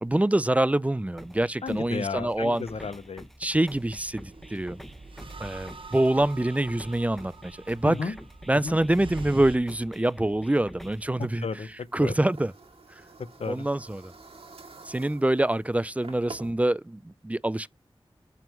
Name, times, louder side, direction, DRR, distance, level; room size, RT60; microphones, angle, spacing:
voice 1, 0.0-2.6 3.4-4.8 5.4-8.1 8.5-11.5 11.9-12.5 12.9-13.0 13.5-14.1 14.9-17.7, right 1 dB, 15° right, 0.4 m, -25 dB
sound 1, 1.2-11.2, equal, ahead, 0.9 m, -47 dB
voice 2, 1.6-3.3 7.8-8.2 8.5-8.8 11.2-12.1 13.4-13.7, left 5 dB, 85° left, 0.7 m, -33 dB
sound 2, 3.7-9.6, right 3 dB, 60° right, 0.9 m, -44 dB
sound 3, 11.2-16.5, right 3 dB, 75° right, 2.0 m, -49 dB
5.9 x 3.6 x 5.8 m
wide cardioid pair, 50°, 10 cm